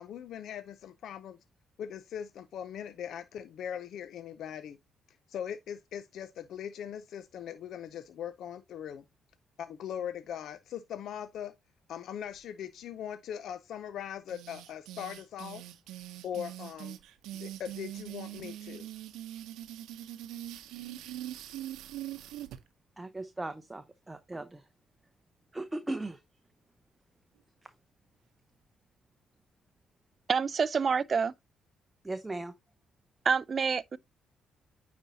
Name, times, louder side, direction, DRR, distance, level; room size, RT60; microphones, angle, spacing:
voice 1, 0.0-1.4 1.8-4.8 5.3-9.0 9.6-11.5 11.9-15.6 16.2-17.0 17.3-18.9, left 9 dB, 75° left, 0.5 m, -40 dB
sound 1, 14.3-22.6, right 13 dB, 90° right, 0.6 m, -42 dB
voice 2, 23.0-24.6 25.5-26.2 32.0-32.5, right 2 dB, 15° right, 0.7 m, -38 dB
voice 3, 30.3-31.3 33.3-34.0, right 5 dB, 40° right, 0.4 m, -27 dB
9.1 x 4.3 x 2.7 m
cardioid pair, 90°, 0 cm